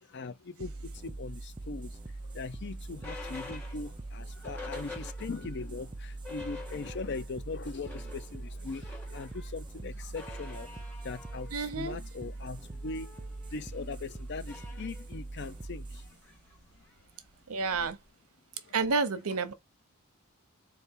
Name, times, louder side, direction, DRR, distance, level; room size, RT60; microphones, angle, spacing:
voice 1, 0.1-10.7 11.0-16.2 17.8-17.9 18.6-18.7, left 4 dB, 50° left, 0.5 m, -41 dB
sound 1, 0.6-17.6, right 2 dB, 20° right, 0.4 m, -43 dB
sound 2, 2.0-5.6 6.0-6.1 6.2-7.3 7.6-18.1, left 3 dB, 10° left, 1.3 m, -48 dB
voice 2, 11.5-12.0 17.5-18.0 18.7-19.5, right 4 dB, 75° right, 0.8 m, -30 dB
4.2 x 2.5 x 3.6 m
head